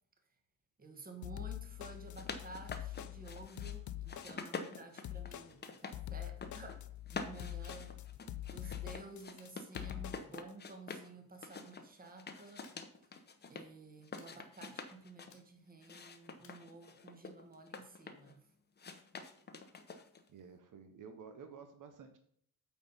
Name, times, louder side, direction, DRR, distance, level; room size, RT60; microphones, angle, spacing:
voice 1, 0.8-8.0 8.4-12.7 13.1-13.2 13.5-18.4, right 3 dB, 25° right, 5 dB, 1.4 m, -53 dB
sound 1, 1.2-10.4, left 13 dB, 55° left, 0.5 m, -44 dB
sound 2, 1.9-3.8 4.1-6.0 6.3-6.8 7.1-11.1 11.4-13.7 14.0-15.3 15.8-18.3 18.8-20.3, left 4 dB, 30° left, 0.8 m, -47 dB
sound 3, 5.3-5.7 6.5-7.0 7.6-8.6 9.4-10.2 10.9-11.1 11.5-11.8 12.6-13.4 14.2-14.8 15.3-15.8 16.4-17.2, left 6 dB, 90° left, 1.8 m, -66 dB
voice 2, 20.3-22.2, right 6 dB, 65° right, 6 dB, 1.0 m, -53 dB
8.4 x 4.2 x 5.5 m, 0.65 s
cardioid pair, 130°, 34 cm